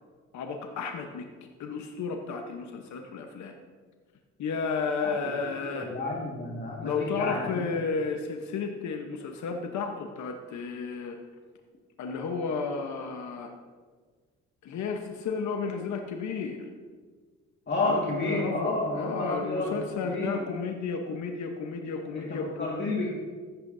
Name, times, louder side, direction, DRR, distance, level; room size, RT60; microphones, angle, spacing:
voice 1, 0.3-1.3 1.6-3.5 4.4-5.9 6.8-11.2 12.0-13.5 14.6-16.7 17.8-22.8, left 5 dB, 70° left, 3 dB, 1.1 m, -33 dB
voice 2, 5.7-7.7 17.7-19.8 20.0-20.3 22.1-23.1, left 2 dB, 35° left, -4 dB, 2.0 m, -30 dB
14.5 x 11.5 x 2.7 m, 1.5 s
cardioid pair, 90°, 30 cm